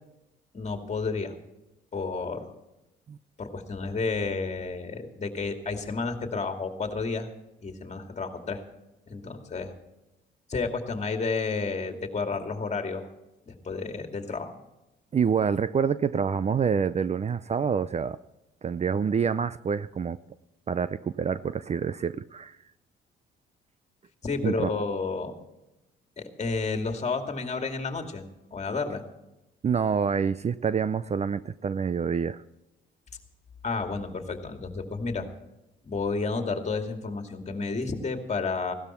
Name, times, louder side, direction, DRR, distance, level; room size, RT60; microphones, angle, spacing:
voice 1, 0.5-1.3 1.9-2.5 3.4-7.3 7.6-8.6 9.1-9.7 10.5-13.1 13.5-14.5 24.2-25.4 26.2-29.0 33.6-35.3 35.8-38.7, left 4 dB, 35° left, 5 dB, 2.5 m, -31 dB
voice 2, 15.1-18.2 18.6-20.2 20.7-22.6 24.4-24.7 29.6-32.4, right 6 dB, 35° right, 16 dB, 0.5 m, -27 dB
17.0 x 12.5 x 4.5 m, 0.97 s
cardioid pair, 90°, 20 cm